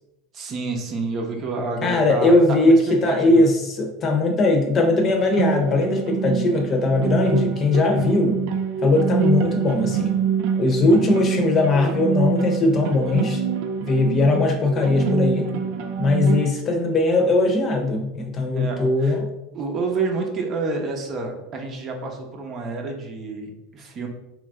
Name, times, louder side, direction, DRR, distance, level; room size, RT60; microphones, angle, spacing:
voice 1, 0.3-3.5 10.6-11.0 18.5-19.2 19.5-24.1, right 3 dB, 40° right, 2 dB, 0.8 m, -29 dB
voice 2, 1.8-8.4 8.8-10.1 10.6-13.4 13.8-15.5 16.0-19.3, left 2 dB, 35° left, 3 dB, 0.7 m, -19 dB
sound 1, 5.1-16.5, right 6 dB, 65° right, 0.4 m, -25 dB
3.1 x 2.5 x 3.6 m, 0.90 s
supercardioid pair, 105°, 0 cm